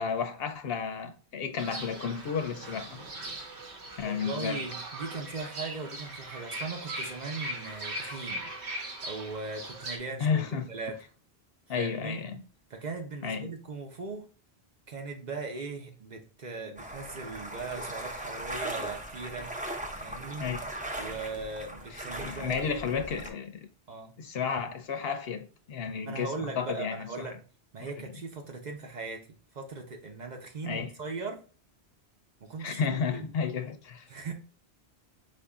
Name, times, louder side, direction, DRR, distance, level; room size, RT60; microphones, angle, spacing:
voice 1, 0.0-3.0 4.0-4.6 10.2-10.7 11.7-12.4 13.2-13.5 20.4-20.6 21.9-23.7 24.2-27.3 27.8-28.1 30.6-30.9 32.6-34.1, left 6 dB, 70° left, 0.8 m, -32 dB
Fowl / Bird, 1.6-10.0, right 1 dB, 90° right, 1.2 m, -39 dB
voice 2, 4.0-8.5 9.0-11.0 11.8-12.2 12.7-14.3 14.9-19.5 20.0-20.5 21.0-22.8 23.9-24.1 26.0-27.4 27.7-31.4 32.4-33.3 34.1-34.3, right 4 dB, 50° right, 0.7 m, -39 dB
sound 1, 16.8-23.3, right 1 dB, 10° right, 0.5 m, -39 dB
5.0 x 2.6 x 3.5 m
omnidirectional pair, 1.1 m